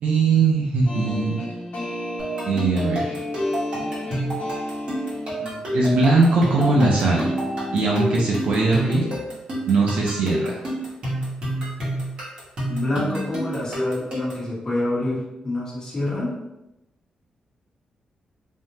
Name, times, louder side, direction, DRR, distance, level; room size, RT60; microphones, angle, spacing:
voice 1, 0.0-1.4 2.5-3.2 5.7-7.3 7.7-9.0 9.7-10.6, right 3 dB, 70° right, -3 dB, 0.5 m, -20 dB
sound 1, 0.9-9.2, left 2 dB, 80° left, 0.8 m, -33 dB
sound 2, 2.2-14.5, right 1 dB, 50° right, 1.0 m, -29 dB
voice 2, 12.7-16.3, left 1 dB, 30° left, -7 dB, 0.9 m, -27 dB
3.4 x 2.0 x 2.7 m, 0.95 s
wide cardioid pair, 170°, 2 cm